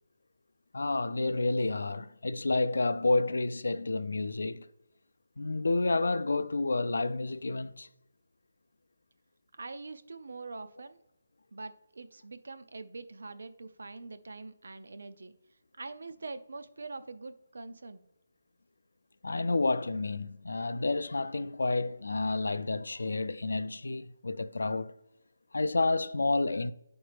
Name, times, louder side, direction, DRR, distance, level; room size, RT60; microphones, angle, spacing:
voice 1, 0.7-4.7 5.4-7.9 19.2-24.9 25.5-26.7, left 3 dB, 80° left, 0.4 m, -30 dB
voice 2, 9.6-11.0 11.5-15.3 15.8-18.0, right 3 dB, 55° right, 0.5 m, -44 dB
11.0 x 4.3 x 3.4 m
hypercardioid pair, 180°, 0 cm